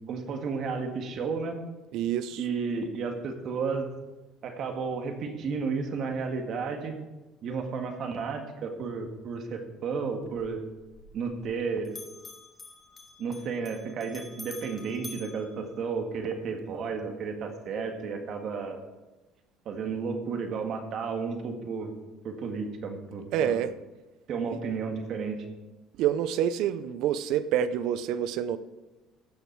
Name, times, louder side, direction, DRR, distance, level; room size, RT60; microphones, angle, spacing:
voice 1, 0.1-1.6 2.4-3.9 4.4-6.9 7.4-10.6 11.1-11.9 13.2-18.8 19.6-21.9 22.2-23.6 24.3-25.4, right 5 dB, 55° right, 4 dB, 1.8 m, -32 dB
voice 2, 1.9-2.5 23.3-23.7 24.5-24.6 26.0-28.6, right 9 dB, 70° right, 14 dB, 0.6 m, -27 dB
Bell, 10.2-11.6 11.9-16.3, left 3 dB, 25° left, 1.9 m, -48 dB
15.5 x 6.6 x 4.6 m, 1.1 s
cardioid pair, 100°, 0 cm